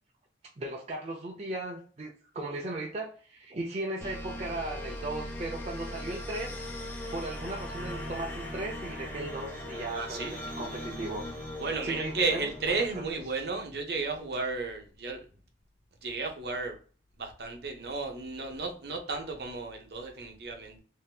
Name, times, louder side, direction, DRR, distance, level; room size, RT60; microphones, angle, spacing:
voice 1, 0.6-6.6 7.1-11.3 11.8-13.1, right 2 dB, 35° right, 0.4 m, -37 dB
sound 1, 4.0-13.4, left 1 dB, 10° left, 0.7 m, -39 dB
voice 2, 9.9-10.3 11.6-15.3 16.0-16.8 17.2-20.8, right 3 dB, 60° right, 0.8 m, -33 dB
3.4 x 2.7 x 2.3 m
head